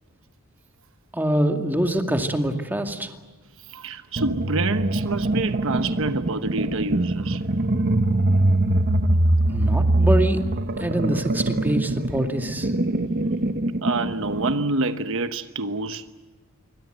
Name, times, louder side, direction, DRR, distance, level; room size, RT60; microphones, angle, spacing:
voice 1, 1.1-3.1 9.5-10.4 10.8-12.7, right 1 dB, 10° right, 2.3 m, -24 dB
voice 2, 3.7-7.4 13.8-16.1, right 3 dB, 65° right, 1.1 m, -27 dB
sound 1, 4.2-14.6, right 1 dB, 45° right, 1.2 m, -23 dB
27.5 x 24.0 x 8.0 m
head